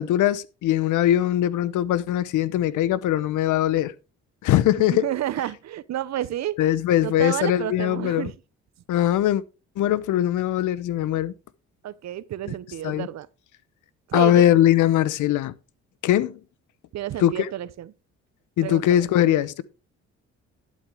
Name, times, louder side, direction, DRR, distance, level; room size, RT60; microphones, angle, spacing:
voice 1, 0.0-3.9 4.4-5.0 6.6-8.3 8.9-9.4 9.8-11.3 12.5-12.6 12.8-13.1 14.1-15.5 16.0-16.4 17.2-17.5 18.6-19.6, left 12 dB, 80° left, 0.8 m, -21 dB
voice 2, 4.8-6.6 7.0-8.3 11.8-13.3 14.1-14.5 16.9-17.9 18.6-19.1, right 12 dB, 65° right, 0.8 m, -30 dB
11.5 x 8.6 x 3.4 m
cardioid pair, 90°, 30 cm